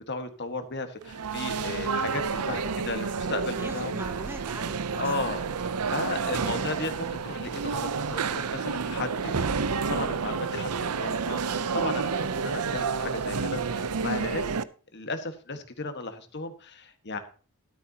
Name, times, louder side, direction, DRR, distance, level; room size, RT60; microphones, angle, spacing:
voice 1, 0.0-3.9 5.0-14.6 14.9-17.2, left 3 dB, 50° left, 7 dB, 1.7 m, -35 dB
sound 1, 1.0-14.6, right 5 dB, 90° right, 0.7 m, -30 dB
voice 2, 2.4-3.1 3.5-5.2 6.0-6.8 12.4-12.6, right 1 dB, 10° right, 7 dB, 1.0 m, -43 dB
13.5 x 12.5 x 2.9 m, 0.38 s
head